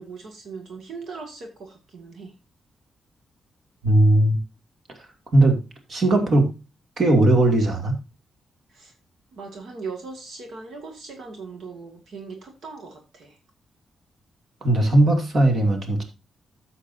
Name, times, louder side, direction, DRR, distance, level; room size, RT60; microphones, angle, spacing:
voice 1, 0.0-2.3 8.7-8.9 9.3-13.4, right 4 dB, 65° right, 3 dB, 2.0 m, -39 dB
voice 2, 3.8-4.4 5.3-5.6 5.9-6.5 7.0-8.0 14.6-16.0, right 1 dB, 45° right, 5 dB, 2.3 m, -18 dB
13.5 x 7.3 x 2.7 m, 0.28 s
wide cardioid pair, 135°, 0 cm